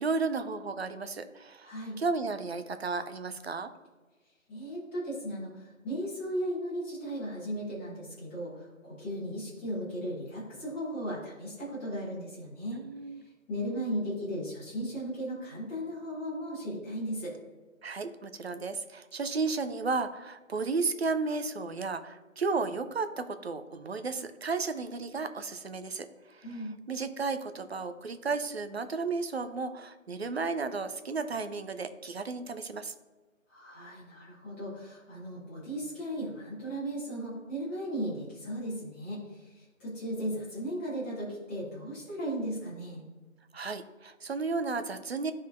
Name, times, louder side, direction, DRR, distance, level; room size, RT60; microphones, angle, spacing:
voice 1, 0.0-3.7 12.7-13.2 17.8-26.4 26.9-32.9 43.5-45.3, right 4 dB, 55° right, 10 dB, 0.5 m, -33 dB
voice 2, 1.6-2.0 4.5-12.8 13.2-17.3 26.4-26.7 33.5-43.0, equal, 10° left, -9 dB, 1.3 m, -36 dB
11.0 x 3.8 x 2.6 m, 1.3 s
figure-of-eight pair, 155°, 40 cm